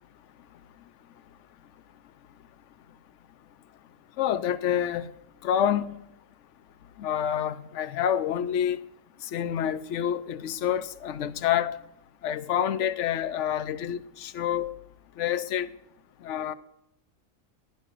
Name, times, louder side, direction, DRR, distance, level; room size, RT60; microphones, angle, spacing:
voice 1, 4.2-5.0 5.4-5.9 7.0-8.8 9.3-11.8 12.2-14.7 15.2-15.7 16.2-16.5, left 10 dB, 65° left, 0.9 m, -27 dB
16.5 x 11.5 x 2.5 m
omnidirectional pair, 1.4 m